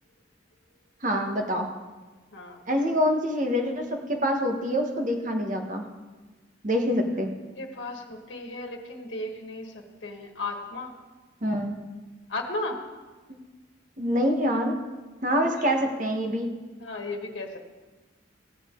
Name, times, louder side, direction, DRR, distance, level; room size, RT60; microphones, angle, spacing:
voice 1, 1.0-1.7 2.7-5.8 6.6-7.3 11.4-11.7 14.0-14.7 15.2-16.5, equal, 45° right, 3 dB, 1.4 m, -25 dB
voice 2, 7.6-9.7 10.0-10.9 12.3-12.8 15.4-15.7 16.8-17.6, left 2 dB, 80° left, 2 dB, 1.4 m, -35 dB
15.5 x 9.0 x 3.8 m, 1.3 s
head